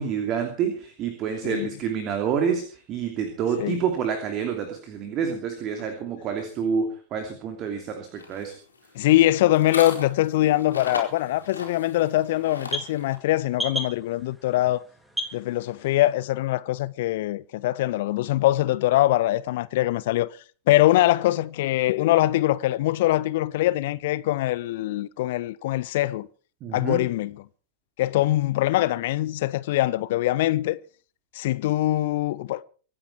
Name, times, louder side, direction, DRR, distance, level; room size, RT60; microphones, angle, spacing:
voice 1, 0.0-8.5 26.6-27.0, right 7 dB, 35° right, 2.9 m, -28 dB
sound 1, 8.1-13.2, left 4 dB, 75° left, 4.4 m, -37 dB
voice 2, 8.9-14.8 15.3-20.3 20.7-26.3 26.7-27.4 28.0-30.8 31.3-32.6, left 15 dB, 55° left, 0.6 m, -23 dB
sound 2, 10.6-16.2, equal, ahead, 3.2 m, -37 dB
25.0 x 9.9 x 4.8 m
figure-of-eight pair, 90°, 0 cm